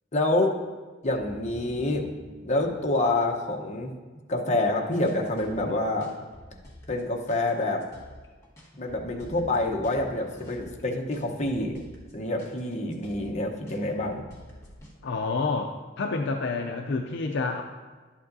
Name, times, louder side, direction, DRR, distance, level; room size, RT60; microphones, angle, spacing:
voice 1, 0.1-0.6 1.0-2.1 2.4-3.9 4.3-6.1 6.9-7.8 8.8-11.8 12.1-14.2, left 2 dB, 35° left, 1 dB, 1.0 m, -27 dB
sound 1, 1.0-4.0 9.0-12.2, left 1 dB, 90° right, 1.5 m, -49 dB
sound 2, 4.9-15.0, left 1 dB, 15° left, 1.5 m, -50 dB
voice 2, 15.0-17.6, left 3 dB, 65° left, 4 dB, 0.5 m, -28 dB
12.0 x 8.4 x 2.7 m, 1.4 s
head